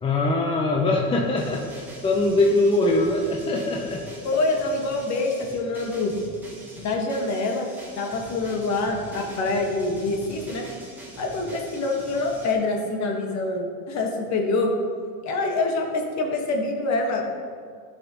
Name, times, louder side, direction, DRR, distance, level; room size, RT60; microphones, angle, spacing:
voice 1, 0.0-4.0, left 2 dB, 15° left, 0 dB, 0.5 m, -22 dB
sound 1, 1.2-12.5, right 1 dB, 5° right, 1.4 m, -43 dB
voice 2, 4.2-6.1 6.7-7.7 8.0-10.6 11.2-14.7 15.2-17.2, left 3 dB, 40° left, 2 dB, 1.4 m, -25 dB
12.5 x 5.6 x 2.9 m, 2.1 s
supercardioid pair, 120°, 45 cm